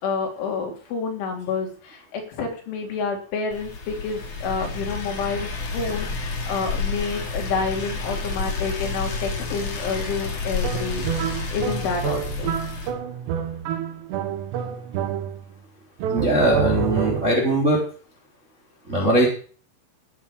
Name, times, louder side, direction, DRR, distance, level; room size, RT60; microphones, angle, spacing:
voice 1, 0.0-11.1 11.5-12.6, left 5 dB, 80° left, 1 dB, 5.9 m, -29 dB
sound 1, 3.5-12.9, left 4 dB, 40° left, 3.1 m, -30 dB
sound 2, 10.6-15.6 16.0-17.5, right 8 dB, 75° right, 3.2 m, -28 dB
voice 2, 16.1-17.8 18.9-19.3, right 1 dB, 15° right, -2 dB, 3.3 m, -20 dB
16.5 x 7.5 x 6.9 m, 0.41 s
omnidirectional pair, 5.4 m